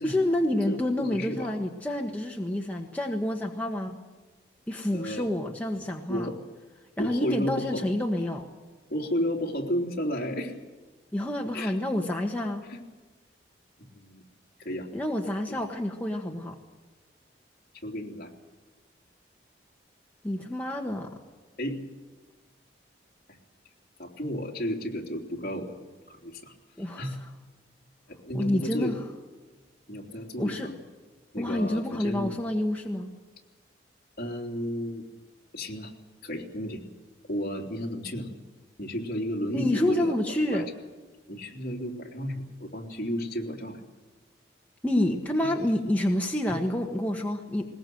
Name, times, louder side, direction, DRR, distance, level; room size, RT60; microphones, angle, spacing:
voice 1, 0.0-4.0 4.7-6.3 7.0-8.4 11.1-12.6 14.9-16.6 20.2-21.1 26.8-27.1 28.3-29.0 30.4-30.7 31.4-33.1 39.5-40.7 44.8-47.7, left 1 dB, 10° left, 0 dB, 1.4 m, -28 dB
voice 2, 0.7-1.5 4.9-5.3 6.1-6.4 7.0-7.9 8.9-10.5 11.5-11.7 12.7-12.8 13.8-14.2 14.6-14.9 15.2-15.6 17.8-18.3 21.6-21.8 24.0-25.7 26.1-26.5 27.0-27.2 28.1-29.0 29.9-30.7 31.3-32.4 34.2-35.0 35.5-35.9 36.2-36.8 37.3-38.3 38.8-40.6 41.3-43.8 45.4-45.5 46.5-46.6, equal, 50° left, -1 dB, 3.4 m, -33 dB
20.5 x 20.0 x 7.8 m, 1.3 s
head